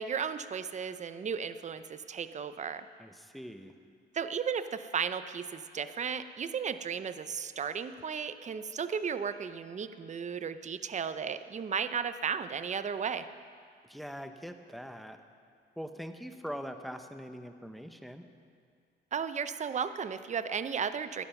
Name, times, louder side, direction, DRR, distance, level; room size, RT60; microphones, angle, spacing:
voice 1, 0.0-2.8 4.1-13.3 19.1-21.2, right 6 dB, 35° right, 12 dB, 0.7 m, -34 dB
voice 2, 3.0-3.7 13.8-15.2 15.8-18.3, equal, ahead, 7 dB, 1.0 m, -42 dB
16.5 x 10.5 x 5.9 m, 2.2 s
cardioid pair, 90°, 20 cm